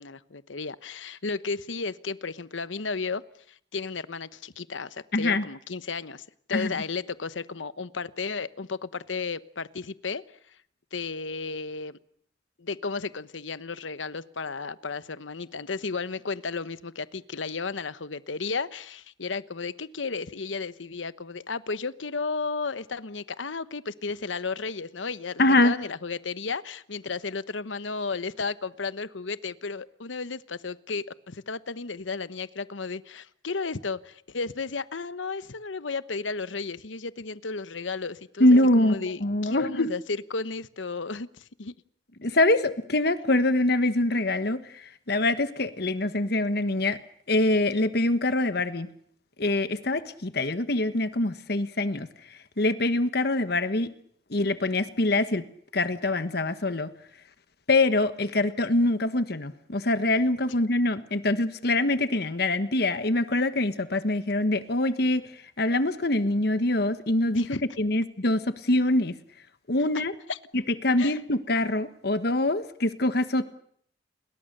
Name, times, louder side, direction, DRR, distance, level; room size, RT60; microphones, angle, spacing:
voice 1, 0.0-3.2 3.5-10.2 10.9-12.0 12.6-38.5 38.7-41.7 67.3-67.6 70.3-70.4 71.0-71.2, left 4 dB, 90° left, 15 dB, 1.0 m, -33 dB
voice 2, 5.1-5.4 6.5-6.7 25.4-25.7 38.4-38.9 39.2-39.9 42.2-47.0 47.3-48.9 49.4-52.1 52.6-53.9 54.3-55.4 55.7-56.9 57.7-65.3 65.6-69.1 69.7-70.1 70.5-73.5, left 2 dB, 55° left, 11 dB, 1.3 m, -24 dB
30.0 x 22.0 x 6.7 m, 0.65 s
head